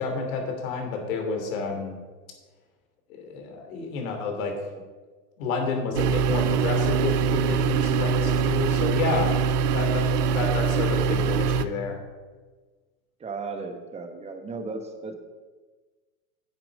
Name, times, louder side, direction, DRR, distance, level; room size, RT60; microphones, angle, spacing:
voice 1, 0.0-2.0 3.1-4.5 5.4-9.3 9.7-10.1 10.3-12.0, left 4 dB, 60° left, 3 dB, 3.0 m, -30 dB
sound 1, 6.0-11.7, right 6 dB, 75° right, 0.7 m, -23 dB
voice 2, 13.2-15.1, right 4 dB, 15° right, 6 dB, 1.1 m, -35 dB
8.9 x 7.8 x 5.2 m, 1.3 s
hypercardioid pair, 130°, 47 cm